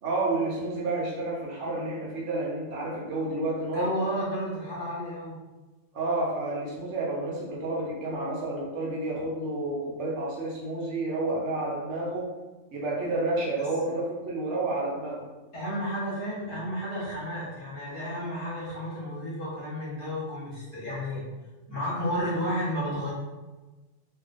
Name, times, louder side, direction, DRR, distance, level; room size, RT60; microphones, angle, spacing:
voice 1, 0.0-3.9 5.9-12.3 12.7-15.3, right 2 dB, 70° right, -3 dB, 0.9 m, -30 dB
voice 2, 3.7-5.4 15.5-21.2 21.7-23.1, equal, 50° left, -7 dB, 0.9 m, -32 dB
2.4 x 2.1 x 2.4 m, 1.2 s
omnidirectional pair, 1.3 m